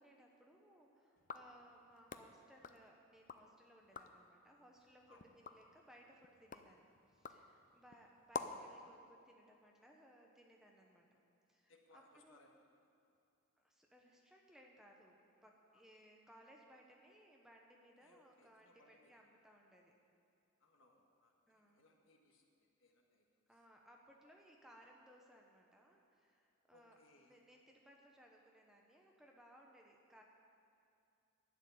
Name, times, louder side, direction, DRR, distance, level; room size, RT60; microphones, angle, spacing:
voice 1, 0.0-11.2 11.5-12.4 13.6-15.2 15.4-19.9 21.5-21.8 23.5-27.0 27.2-30.2, equal, ahead, 0 dB, 0.9 m, -64 dB
sound 1, 1.2-3.5 3.8-4.3 4.8-8.8, left 5 dB, 35° left, 0.5 m, -51 dB
voice 2, 11.7-12.7 15.7-15.8 18.0-19.2 20.6-23.5 26.7-27.4, left 2 dB, 60° left, 1 dB, 1.5 m, -69 dB
11.5 x 7.2 x 9.3 m, 2.6 s
head